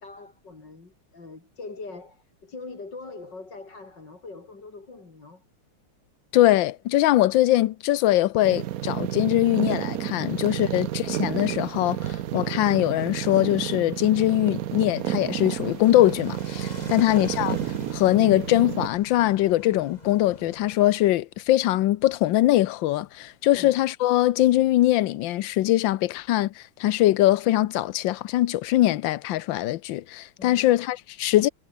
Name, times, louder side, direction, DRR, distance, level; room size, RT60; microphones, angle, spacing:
voice 1, 0.0-5.4 10.3-10.8 16.7-17.2 23.5-23.8 30.4-30.8, left 3 dB, 55° left, 4.5 m, -42 dB
voice 2, 6.3-17.6 17.9-31.5, left 15 dB, 75° left, 1.3 m, -22 dB
sound 1, 8.4-18.9, right 12 dB, 65° right, 0.9 m, -31 dB
sound 2, 13.0-20.8, left 1 dB, 20° left, 4.3 m, -45 dB
omnidirectional pair, 2.3 m